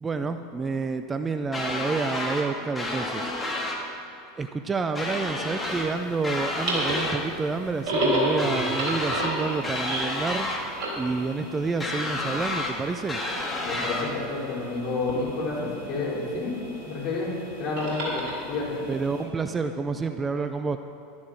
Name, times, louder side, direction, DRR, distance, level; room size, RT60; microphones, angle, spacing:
voice 1, 0.0-3.3 4.4-10.5 10.9-13.2 18.9-20.8, right 4 dB, 20° right, 8 dB, 0.5 m, -29 dB
sound 1, 1.5-2.5 2.8-3.8 5.0-5.9 6.2-7.2 8.4-9.3 9.6-10.6 11.8-12.7 13.1-14.1, left 2 dB, 15° left, 2.3 m, -30 dB
sound 2, 5.6-19.2, right 1 dB, 50° right, 3.9 m, -32 dB
voice 2, 13.6-16.5 16.8-18.8, left 3 dB, 45° left, -4 dB, 4.1 m, -30 dB
12.5 x 10.5 x 6.4 m, 2.5 s
figure-of-eight pair, 80°, 0 cm